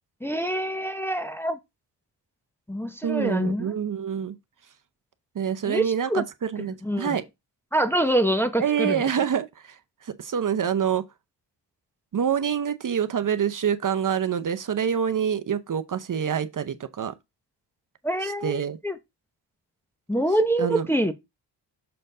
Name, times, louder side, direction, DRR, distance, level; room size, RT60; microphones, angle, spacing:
voice 1, 0.2-1.6 2.7-3.7 5.7-6.2 6.6-7.2 7.7-9.0 18.0-19.0 20.1-21.1, right 1 dB, 5° left, 0.7 m, -25 dB
voice 2, 3.0-4.4 5.4-7.2 8.6-9.8 10.0-11.0 12.1-17.1 18.2-18.8 20.6-20.9, right 8 dB, 45° right, 0.7 m, -26 dB
6.7 x 4.4 x 3.8 m
cardioid pair, 90°, 44 cm